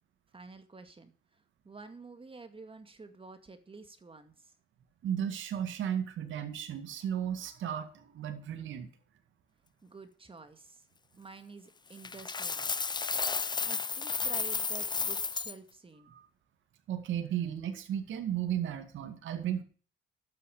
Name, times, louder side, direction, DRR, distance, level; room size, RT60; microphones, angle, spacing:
voice 1, 0.3-4.5 9.8-10.9 11.2-12.7 13.6-16.1, right 3 dB, 25° right, 8 dB, 2.1 m, -50 dB
voice 2, 5.0-8.9 16.1-16.2 16.9-19.6, right 9 dB, 75° right, 6 dB, 2.2 m, -34 dB
Coin (dropping), 12.0-15.5, left 5 dB, 20° left, 0.5 m, -32 dB
12.5 x 9.3 x 6.4 m, 0.40 s
cardioid pair, 90°, 20 cm